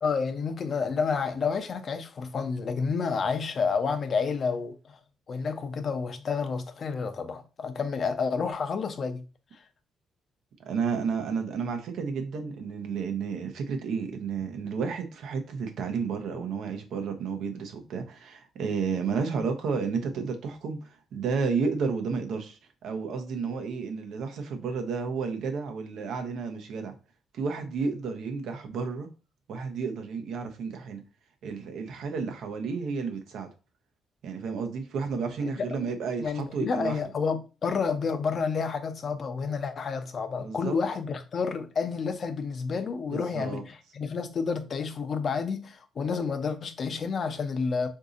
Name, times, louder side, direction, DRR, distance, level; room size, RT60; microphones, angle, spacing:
voice 1, 0.0-5.0 5.3-9.2 9.5-9.6 35.4-35.5 36.2-47.9, left 5 dB, 50° left, 0.5 m, -30 dB
voice 2, 10.7-26.9 27.3-29.1 29.5-31.0 31.4-33.5 34.2-37.0 40.4-40.7 43.1-43.6, right 5 dB, 75° right, 0.7 m, -32 dB
3.9 x 2.6 x 2.5 m
cardioid pair, 90°, 0 cm